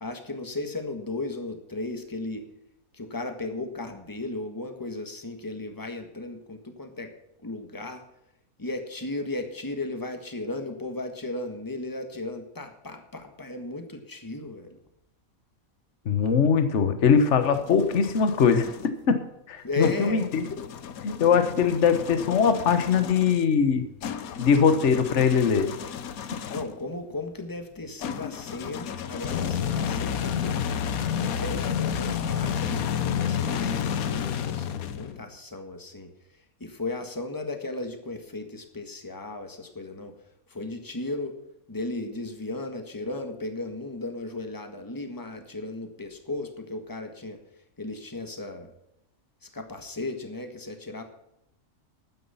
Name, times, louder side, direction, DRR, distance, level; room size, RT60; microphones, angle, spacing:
voice 1, 0.0-2.4 2.9-7.1 7.4-8.0 8.6-14.8 19.6-20.2 26.5-30.7 31.2-40.1 40.5-41.3 41.7-47.4 47.8-48.7 49.4-51.0, left 2 dB, 15° left, 6 dB, 1.5 m, -35 dB
voice 2, 16.0-18.7 19.1-19.2 19.5-20.4 21.0-23.9 24.4-25.7, left 6 dB, 55° left, 9 dB, 1.4 m, -21 dB
sound 1, 17.1-18.9 19.8-26.8 28.0-35.3, left 8 dB, 80° left, 1.3 m, -31 dB
12.0 x 9.6 x 5.6 m, 0.84 s
omnidirectional pair, 1.5 m